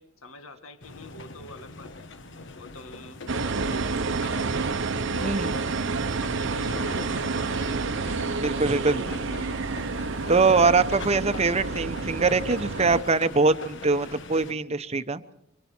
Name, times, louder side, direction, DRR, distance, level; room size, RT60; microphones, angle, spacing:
voice 1, 0.0-2.1 2.6-4.1 4.4-4.6 4.9-5.8 6.2-7.8 8.4-9.6, left 2 dB, 80° left, 7 dB, 1.8 m, -43 dB
sound 1, 0.8-14.5, left 3 dB, 60° left, 1.2 m, -42 dB
sound 2, 3.3-13.0, right 4 dB, 60° right, 0.8 m, -29 dB
voice 2, 5.2-5.5 8.4-9.0 10.3-15.2, right 4 dB, 30° right, 12 dB, 0.9 m, -23 dB
25.5 x 25.0 x 4.5 m, 0.73 s
head